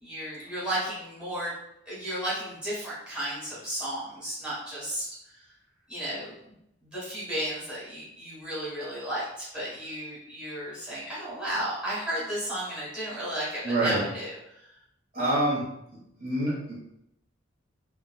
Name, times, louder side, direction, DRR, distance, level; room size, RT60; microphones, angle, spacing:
voice 1, 0.0-1.5 1.8-5.1 5.9-6.4 6.9-14.4, right 1 dB, 5° right, -10 dB, 1.4 m, -33 dB
voice 2, 13.6-14.0 15.1-15.6 16.2-16.8, right 1 dB, 50° right, -7 dB, 1.4 m, -26 dB
3.9 x 2.4 x 2.3 m, 0.79 s
head